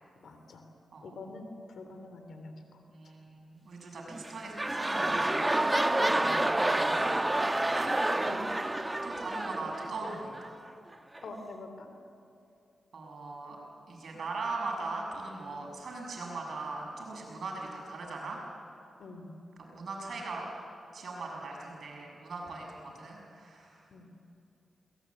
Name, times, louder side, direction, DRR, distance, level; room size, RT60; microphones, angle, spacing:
voice 1, 0.2-0.6 1.0-2.5 5.8-6.4 8.2-8.5 8.7-8.9 11.2-11.9 19.0-19.3 23.9-24.1, left 2 dB, 75° left, 6 dB, 3.2 m, -45 dB
voice 2, 2.9-5.3 6.6-7.2 7.7-8.0 8.3-8.4 9.0-10.5 12.9-13.6 13.9-18.4 19.6-20.5 20.9-23.8, right 3 dB, 70° right, -1 dB, 6.8 m, -40 dB
sound 1, 4.1-10.5 11.2-11.3, right 1 dB, 20° right, 1.2 m, -29 dB
22.5 x 20.0 x 8.5 m, 2.6 s
supercardioid pair, 45°, 0 cm